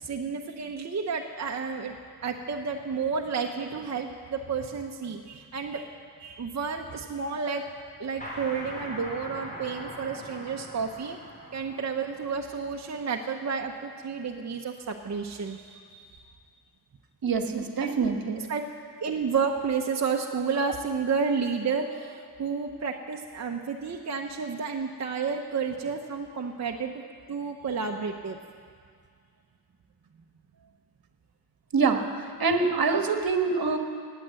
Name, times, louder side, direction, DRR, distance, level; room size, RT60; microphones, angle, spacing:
voice 1, 0.0-1.9 2.2-5.9 6.2-7.6 8.0-11.2 11.5-16.2 17.8-18.0 18.4-18.6 19.0-27.0 27.3-28.4, right 5 dB, 45° right, 2 dB, 0.8 m, -31 dB
sound 1, 8.2-13.6, equal, 20° left, 3.9 m, -42 dB
voice 2, 17.2-18.4 31.7-32.0 32.4-33.8, right 4 dB, 65° right, 5 dB, 1.4 m, -25 dB
18.0 x 9.1 x 7.6 m, 2.1 s
wide cardioid pair, 120°, 39 cm